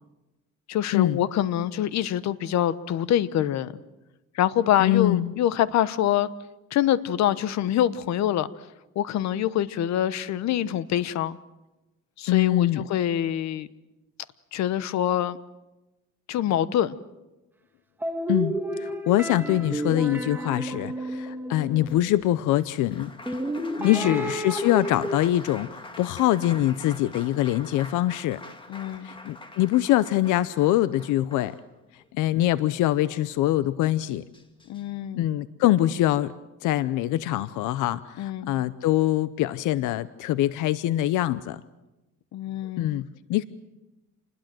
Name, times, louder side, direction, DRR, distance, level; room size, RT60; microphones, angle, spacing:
voice 1, 0.7-3.7 4.3-6.3 6.7-8.5 8.9-11.4 12.2-13.7 14.5-15.4 16.3-17.0 23.8-24.1 28.7-29.1 34.7-35.3 38.2-38.5 42.3-42.9, left 11 dB, 65° left, 16 dB, 1.1 m, -25 dB
voice 2, 4.8-5.3 12.3-12.8 18.3-18.5 18.8-23.1 23.8-28.4 29.0-31.5 32.1-34.2 35.1-36.3 36.6-41.6 42.8-43.4, left 14 dB, 90° left, 16 dB, 0.8 m, -24 dB
sound 1, 18.0-22.2 23.3-25.2, right 1 dB, 5° right, 2.0 m, -31 dB
Applause, 21.8-32.1 33.4-33.5 33.8-34.8, left 2 dB, 15° left, 2.1 m, -44 dB
28.0 x 21.0 x 7.7 m, 1.0 s
cardioid pair, 135°, 30 cm